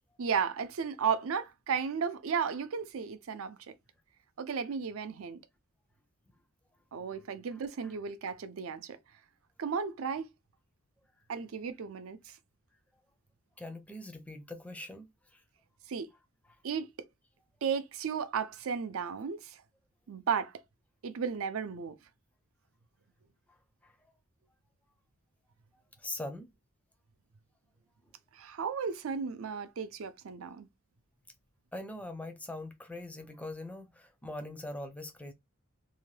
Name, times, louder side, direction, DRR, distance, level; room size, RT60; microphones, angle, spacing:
voice 1, 0.2-3.6 4.4-5.4 6.9-9.0 9.6-10.3 11.3-12.4 15.9-16.1 16.6-16.9 17.6-19.6 20.1-20.6 21.0-21.9 28.3-30.7, right 6 dB, 75° right, 0.4 m, -34 dB
voice 2, 7.5-8.0 13.6-15.4 16.1-16.2 16.4-16.5 23.5-23.6 23.8-24.0 26.0-26.5 31.7-35.3, left 1 dB, 5° left, 0.4 m, -42 dB
2.7 x 2.2 x 3.1 m
head